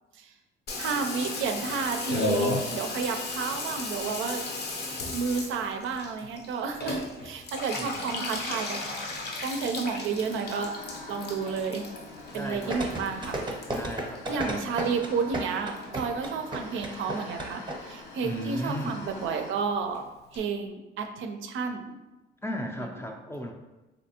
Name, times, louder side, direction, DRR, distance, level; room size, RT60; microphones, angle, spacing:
Water tap faucet / Bathtub (filling or washing), 0.7-15.2 15.5-16.2 16.5-16.6 16.8-16.9 17.2-17.5 17.8-17.9 18.2-18.3 18.5-18.6 18.8-18.9 19.2-19.3 19.6-19.7 19.9-20.0 20.3-20.4, left 2 dB, 60° left, 0.6 m, -35 dB
voice 1, 0.8-4.5 5.1-8.8 9.4-10.8 11.1-11.8 12.3-13.4 14.3-20.0 20.3-22.0 22.8-22.9, right 5 dB, 80° right, 5 dB, 0.4 m, -31 dB
voice 2, 7.7-8.3 12.3-13.1 13.7-15.0 18.2-19.0 22.4-23.5, equal, 10° left, 3 dB, 0.4 m, -36 dB
sound 1, 8.2-19.5, left 2 dB, 90° left, 0.8 m, -45 dB
sound 2, 12.7-17.7 18.0-18.1, right 1 dB, 25° right, 0.7 m, -32 dB
3.3 x 2.6 x 2.8 m, 1.0 s
cardioid pair, 90°, 20 cm